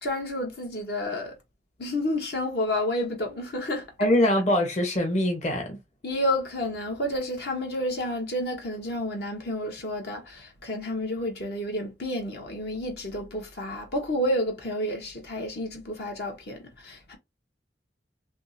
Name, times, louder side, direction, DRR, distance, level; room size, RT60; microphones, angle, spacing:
voice 1, 0.0-1.4 1.8-3.9 6.0-17.2, left 1 dB, 65° left, 1.1 m, -30 dB
voice 2, 4.0-5.8, left 1 dB, 40° left, 1.0 m, -23 dB
3.6 x 2.8 x 2.7 m
head